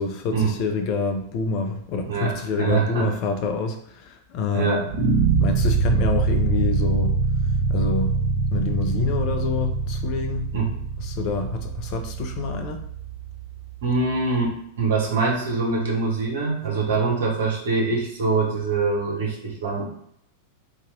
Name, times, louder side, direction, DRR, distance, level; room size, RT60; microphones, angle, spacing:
voice 1, 0.0-4.8 5.4-7.2 7.7-8.2 8.5-10.5 11.0-12.8, left 4 dB, 40° left, 7 dB, 0.5 m, -27 dB
voice 2, 2.1-3.1 4.5-4.9 10.5-10.7 13.8-19.8, right 4 dB, 60° right, -2 dB, 1.0 m, -24 dB
sound 1, 4.9-14.0, right 4 dB, 35° right, 1.1 m, -24 dB
2.9 x 2.4 x 3.6 m, 0.69 s
figure-of-eight pair, 90°, 0 cm